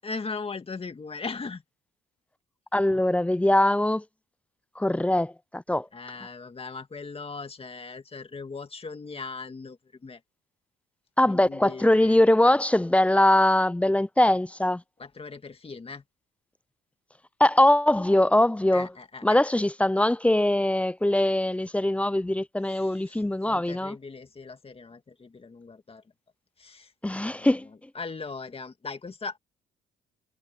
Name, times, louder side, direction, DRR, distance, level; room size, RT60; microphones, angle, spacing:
voice 1, 0.0-1.6 5.9-10.2 11.3-12.2 15.0-16.0 18.7-19.4 22.7-26.0 26.6-29.4, left 4 dB, 30° left, 2.2 m, -39 dB
voice 2, 2.7-4.0 4.8-5.8 11.2-14.8 17.4-18.9 19.2-24.0 27.0-27.7, left 1 dB, 5° left, 0.4 m, -22 dB
cardioid pair, 90°, 20 cm